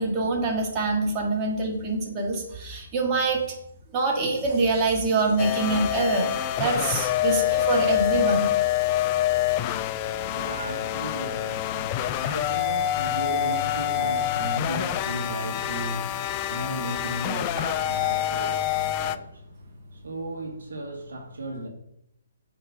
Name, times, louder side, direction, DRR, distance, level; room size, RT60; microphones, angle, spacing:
voice 1, 0.0-3.4 3.9-6.3 6.6-8.4, right 3 dB, 25° right, 1.8 m, -25 dB
sound 1, 5.4-19.2, left 12 dB, 30° left, 0.4 m, -26 dB
voice 2, 9.8-21.7, right 1 dB, 75° right, 1.7 m, -35 dB
6.5 x 4.5 x 4.8 m
figure-of-eight pair, 135°, 0 cm